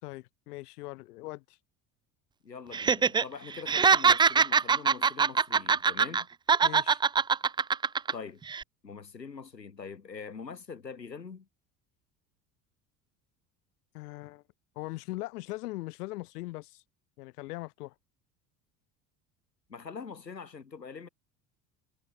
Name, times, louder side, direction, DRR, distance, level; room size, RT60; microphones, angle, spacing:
voice 1, 0.0-1.6 6.6-7.0 13.9-14.4 14.8-16.8 17.2-17.9, left 19 dB, 65° left, 6.2 m, -40 dB
voice 2, 2.4-6.3 8.1-8.4 8.8-11.5 19.7-21.1, left 5 dB, 85° left, 2.2 m, -43 dB
Laughter, 2.7-3.2 3.5-6.2 6.5-8.1 8.5-8.6, right 6 dB, 10° right, 0.4 m, -23 dB
figure-of-eight pair, 65°, 49 cm